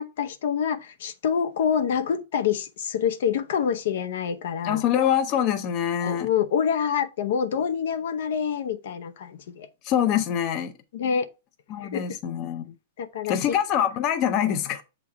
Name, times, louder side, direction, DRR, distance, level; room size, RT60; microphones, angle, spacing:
voice 1, 0.0-4.8 6.0-9.7 10.9-11.3 11.8-12.2 13.0-13.4, left 7 dB, 65° left, 0.7 m, -26 dB
voice 2, 4.6-6.3 9.8-10.7 11.7-12.7 13.3-14.8, left 9 dB, 30° left, 0.6 m, -24 dB
7.1 x 3.0 x 4.7 m
supercardioid pair, 170°, 0 cm